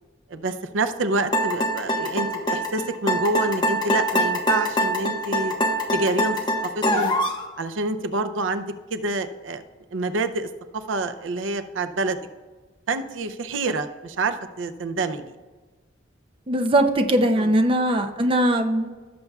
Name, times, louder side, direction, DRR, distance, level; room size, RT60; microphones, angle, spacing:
voice 1, 0.3-5.5 5.9-7.1 7.6-9.6 9.9-10.5 10.7-12.2 12.9-15.4 17.4-17.5, right 2 dB, 80° right, 10 dB, 0.6 m, -27 dB
sound 1, 1.3-7.4, equal, 25° left, 1.1 m, -23 dB
voice 2, 16.5-18.9, right 1 dB, 30° right, 6 dB, 0.6 m, -20 dB
17.0 x 6.8 x 2.4 m, 1.3 s
head